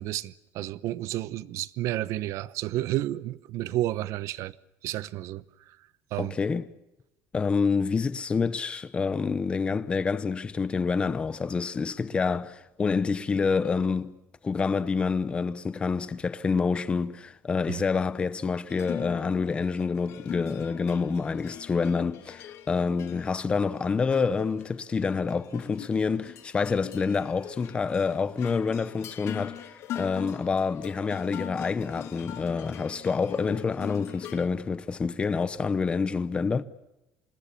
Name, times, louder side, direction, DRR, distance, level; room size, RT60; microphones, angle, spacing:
voice 1, 0.0-4.5 4.8-5.4 6.1-6.4 17.7-17.8, right 15 dB, 60° right, 0.9 m, -31 dB
voice 2, 6.2-6.7 7.3-14.1 14.4-36.6, left 5 dB, 15° left, 0.8 m, -27 dB
sound 1, 18.7-34.5, left 11 dB, 50° left, 1.9 m, -42 dB
27.0 x 20.5 x 8.4 m
cardioid pair, 175°, 6 cm